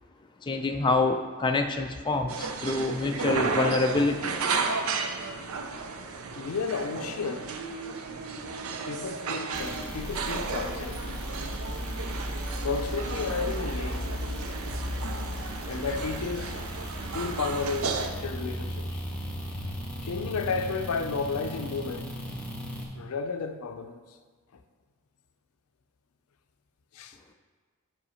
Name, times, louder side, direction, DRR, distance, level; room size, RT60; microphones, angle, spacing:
voice 1, 0.4-4.2, left 3 dB, 20° left, 0.4 m, -26 dB
sound 1, 2.3-18.1, right 4 dB, 70° right, 0.5 m, -34 dB
voice 2, 4.8-5.2 6.4-7.5 8.8-11.2 12.6-14.1 14.7-14.8 15.7-16.6 17.1-19.0 20.0-22.1 22.9-24.0 24.5-24.6 26.9-27.2, left 4 dB, 80° left, 0.5 m, -33 dB
sound 2, 9.5-22.8, equal, 5° left, 0.9 m, -36 dB
5.6 x 5.0 x 5.6 m
head